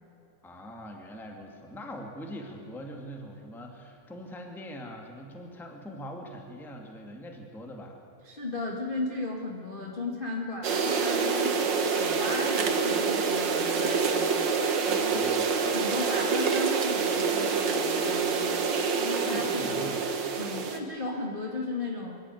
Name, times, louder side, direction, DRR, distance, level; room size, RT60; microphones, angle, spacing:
voice 1, 0.4-8.0 14.9-15.6 19.2-20.0, equal, ahead, 2 dB, 1.2 m, -42 dB
voice 2, 8.2-14.3 14.8-15.3 15.7-18.5 19.0-20.0 20.4-22.2, left 2 dB, 25° left, -1 dB, 1.1 m, -35 dB
sound 1, 10.6-20.8, right 5 dB, 85° right, 1.0 m, -27 dB
24.0 x 13.5 x 9.5 m, 2.7 s
omnidirectional pair, 4.4 m